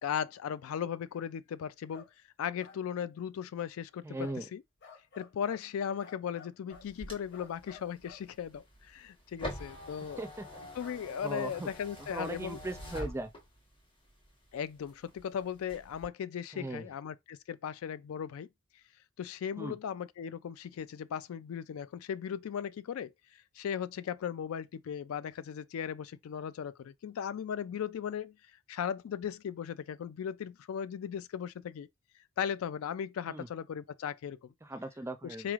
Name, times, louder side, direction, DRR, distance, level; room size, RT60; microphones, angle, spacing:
voice 1, 0.0-2.0 2.4-4.6 5.2-10.2 10.7-12.6 12.9-13.0 14.5-18.5 19.2-28.3 28.7-31.9 32.4-34.5 35.4-35.5, left 8 dB, 75° left, 0.3 m, -37 dB
sound 1, 1.9-2.1 2.6-2.8 4.2-4.4 4.8-5.6 6.0-6.9 7.3-8.3 10.8-11.0, left 5 dB, 50° left, 0.7 m, -53 dB
voice 2, 4.0-4.5 10.2-10.6 11.2-11.7 12.0-13.3 16.5-16.9 19.6-19.8 33.3-33.5 34.6-35.5, right 2 dB, 10° right, 0.4 m, -39 dB
sound 2, 6.7-13.8 14.2-15.2 15.6-16.1, equal, 25° left, 1.2 m, -45 dB
4.0 x 3.1 x 2.4 m
head